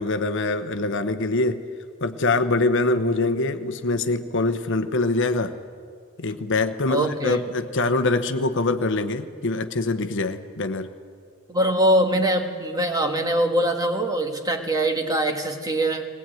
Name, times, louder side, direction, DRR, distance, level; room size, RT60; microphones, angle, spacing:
voice 1, 0.0-1.6 2.0-5.5 6.2-10.9, left 2 dB, 60° left, 9 dB, 1.0 m, -24 dB
voice 2, 6.9-7.4 11.5-16.1, right 1 dB, 15° right, 4 dB, 1.7 m, -23 dB
20.0 x 18.5 x 9.1 m, 2.2 s
head